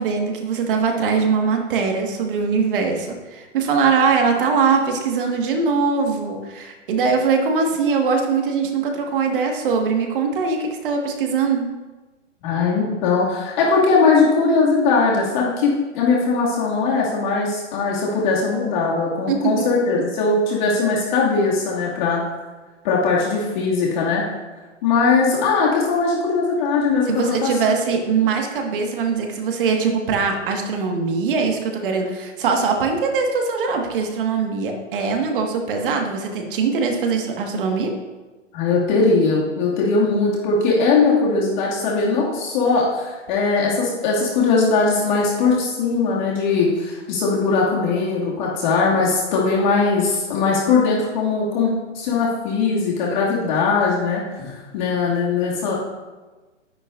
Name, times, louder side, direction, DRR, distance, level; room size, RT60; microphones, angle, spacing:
voice 1, 0.0-11.7 19.3-19.7 27.1-37.9, right 5 dB, 45° right, 2 dB, 1.8 m, -21 dB
voice 2, 12.4-22.2 22.8-24.2 24.8-27.1 27.4-27.5 38.5-51.7 51.9-55.7, left 4 dB, 40° left, -4 dB, 2.4 m, -20 dB
12.0 x 10.0 x 2.6 m, 1.2 s
hypercardioid pair, 140°, 37 cm